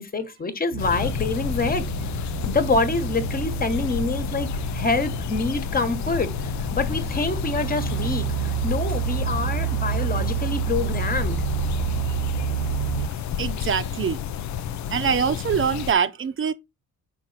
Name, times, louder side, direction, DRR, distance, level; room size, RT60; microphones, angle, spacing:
voice 1, 0.0-1.9 2.4-11.4, left 3 dB, 30° left, 1.3 m, -26 dB
sound 1, 0.7-13.1, right 17 dB, 90° right, 0.5 m, -29 dB
sound 2, 0.8-15.9, left 9 dB, 70° left, 0.5 m, -30 dB
voice 2, 13.4-14.2 14.9-16.5, right 7 dB, 45° right, 0.8 m, -24 dB
5.8 x 4.2 x 4.0 m
cardioid pair, 90°, 30 cm